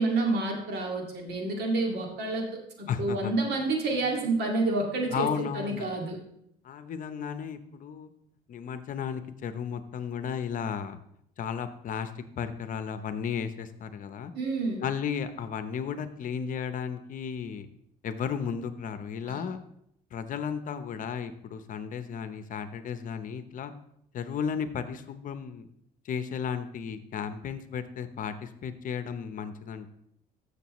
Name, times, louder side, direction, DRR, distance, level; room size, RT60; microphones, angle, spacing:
voice 1, 0.0-2.5 2.8-6.2 14.3-14.8 19.2-19.4, right 2 dB, 75° right, 1 dB, 2.3 m, -29 dB
voice 2, 2.9-3.3 5.1-5.9 6.6-8.1 8.5-11.0 11.4-12.1 12.4-14.3 14.8-17.7 18.0-19.6 20.1-23.7 24.1-25.7 26.0-29.9, left 7 dB, 50° left, 10 dB, 0.8 m, -34 dB
13.5 x 6.6 x 3.1 m, 0.75 s
cardioid pair, 110°, 17 cm